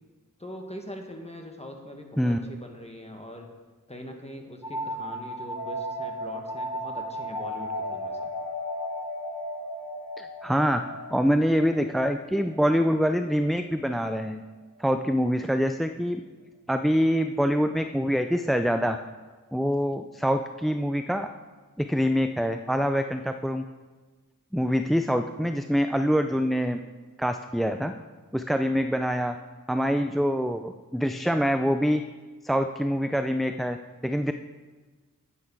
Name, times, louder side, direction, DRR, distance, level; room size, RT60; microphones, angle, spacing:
voice 1, 0.4-3.5 3.9-8.3, equal, 20° left, 2 dB, 1.4 m, -42 dB
sound 1, 4.6-14.0, equal, 70° left, 1.0 m, -35 dB
voice 2, 10.2-10.8 11.1-14.4 14.8-16.2 16.7-19.0 19.5-21.3 21.8-23.6 24.5-26.8 27.2-27.9 28.3-29.4 29.7-32.0 32.4-33.8 34.0-34.3, equal, ahead, 8 dB, 0.3 m, -25 dB
9.1 x 8.7 x 4.7 m, 1.3 s
wide cardioid pair, 50°, 34 cm